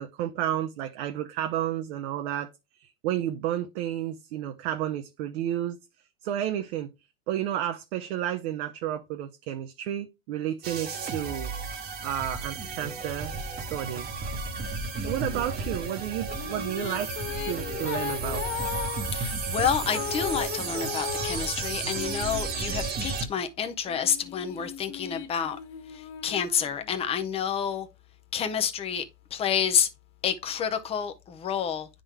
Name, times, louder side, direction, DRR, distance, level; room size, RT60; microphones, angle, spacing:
voice 1, 0.0-2.5 2.8-5.8 6.2-6.9 7.3-11.5 12.0-14.1 15.0-17.1 17.4-18.4, right 11 dB, 45° right, 0.7 m, -31 dB
sound 1, 10.6-23.3, right 4 dB, 20° right, 1.0 m, -33 dB
Female singing, 16.0-22.9 23.6-27.3, left 11 dB, 55° left, 1.6 m, -38 dB
voice 2, 19.1-25.6 26.2-27.9 28.3-29.0 29.3-29.9 30.2-31.9, left 8 dB, 15° left, 0.5 m, -29 dB
9.6 x 3.8 x 3.4 m
hypercardioid pair, 120°, 46 cm